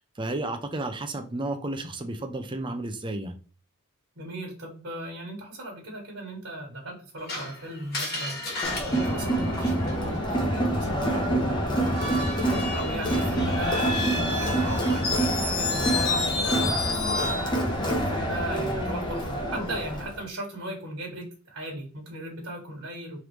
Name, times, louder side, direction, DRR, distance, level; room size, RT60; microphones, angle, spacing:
voice 1, 0.0-3.4, right 2 dB, 20° right, 6 dB, 0.5 m, -32 dB
voice 2, 4.1-23.2, right 1 dB, 65° right, -2 dB, 1.4 m, -37 dB
Screech, 7.3-10.2 11.8-17.5, left 3 dB, 45° left, 1.5 m, -31 dB
Crowd, 8.6-20.2, right 1 dB, 20° left, 0.8 m, -27 dB
3.7 x 3.4 x 3.1 m, 0.38 s
head